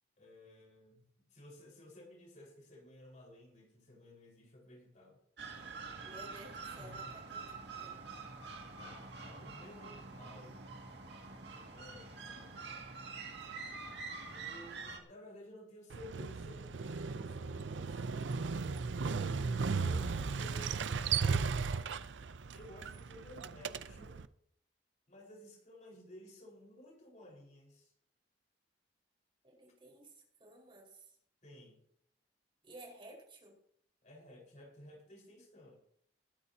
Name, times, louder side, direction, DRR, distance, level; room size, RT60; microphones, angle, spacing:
voice 1, 0.2-1.0 1.3-5.2 6.8-7.1 8.8-10.7 11.5-12.6 14.3-18.7 19.8-21.6 22.5-24.2 25.1-27.9 31.4-31.8 34.0-35.8, left 1 dB, 45° left, -1 dB, 4.8 m, -55 dB
sound 1, 5.4-15.0, right 4 dB, 65° right, 2.2 m, -46 dB
voice 2, 6.0-7.4 7.7-8.0 20.0-20.2 22.1-22.3 29.4-31.1 32.6-33.5, right 1 dB, 30° right, -1 dB, 4.9 m, -55 dB
Motorcycle, 15.9-24.2, right 5 dB, 85° right, 0.6 m, -36 dB
21.0 x 12.5 x 2.8 m, 0.66 s
head